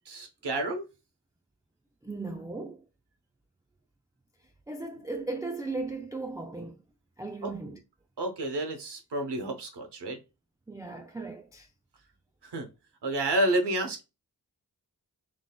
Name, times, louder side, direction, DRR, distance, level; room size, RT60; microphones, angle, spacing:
voice 1, 0.1-0.8 7.4-7.5 8.2-10.2 12.4-12.7 13.0-14.0, right 1 dB, 90° right, 0.9 m, -30 dB
voice 2, 2.0-2.8 4.7-6.8 7.2-7.8 10.7-11.7, right 3 dB, 10° right, 0.4 m, -37 dB
6.0 x 2.4 x 2.2 m
cardioid pair, 45°, 39 cm